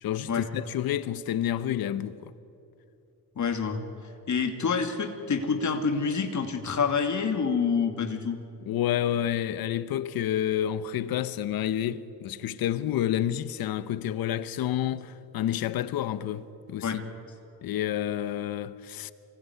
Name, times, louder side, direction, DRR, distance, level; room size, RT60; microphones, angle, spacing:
voice 1, 0.0-2.3 8.7-17.0 17.6-19.1, left 11 dB, 85° left, 1.1 m, -29 dB
voice 2, 3.4-3.8 4.3-8.4 16.8-17.0, left 5 dB, 55° left, 2.5 m, -27 dB
24.5 x 19.0 x 9.5 m
cardioid pair, 70°, 35 cm